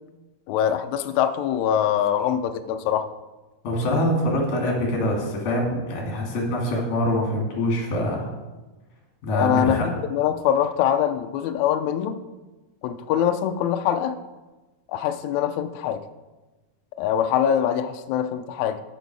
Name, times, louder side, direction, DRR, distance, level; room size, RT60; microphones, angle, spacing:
voice 1, 0.5-3.1 9.3-12.1 12.8-14.1 14.9-16.0 17.0-18.8, left 9 dB, 85° left, 9 dB, 1.6 m, -23 dB
voice 2, 3.6-8.3 9.2-9.8, left 1 dB, 70° left, -1 dB, 3.7 m, -24 dB
12.0 x 6.2 x 4.7 m, 1.2 s
omnidirectional pair, 4.0 m